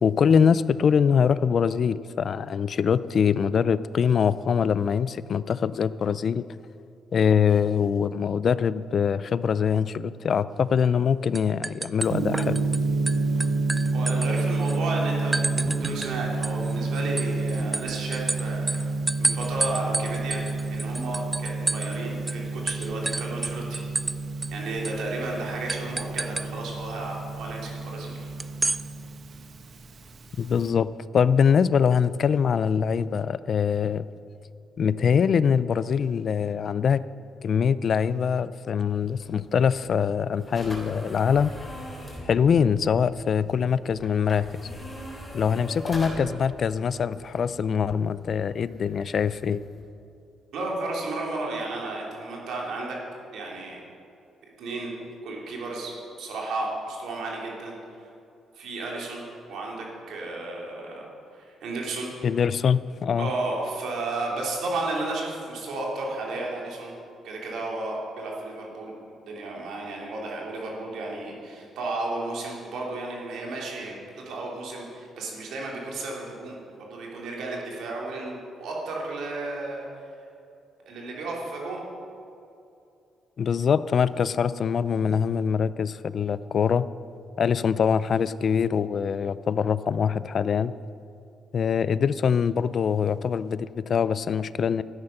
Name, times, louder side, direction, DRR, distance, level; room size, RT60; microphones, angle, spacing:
voice 1, 0.0-6.4 7.1-12.6 30.4-34.1 34.8-37.0 37.4-41.5 42.2-44.5 45.3-49.6 62.2-63.3 83.4-86.9 87.4-90.7 91.5-94.8, left 7 dB, 55° left, 17 dB, 0.4 m, -23 dB
sound 1, 10.8-11.1 11.3-12.8 13.1-14.8 15.3-16.1 16.4-22.0 22.3-22.4 22.7-24.2 24.4-24.5 24.8-25.0 25.7-26.5 28.4-28.8, right 3 dB, 20° right, 0.4 m, -30 dB
Gong, 12.0-30.7, right 3 dB, 50° right, 1.2 m, -29 dB
voice 2, 13.9-18.8 19.2-20.4 20.7-23.8 24.5-28.3 50.5-53.0 53.3-53.8 54.6-54.9 55.2-58.1 58.5-59.2 59.5-61.1 61.3-62.1 63.2-66.9 67.2-68.9 69.2-74.0 74.2-79.9 80.9-81.8, right 2 dB, 75° right, -2 dB, 3.1 m, -33 dB
sound 2, 39.0-49.8, equal, 15° left, 3.4 m, -42 dB
13.0 x 9.7 x 5.8 m, 2.6 s
cardioid pair, 90°, 0 cm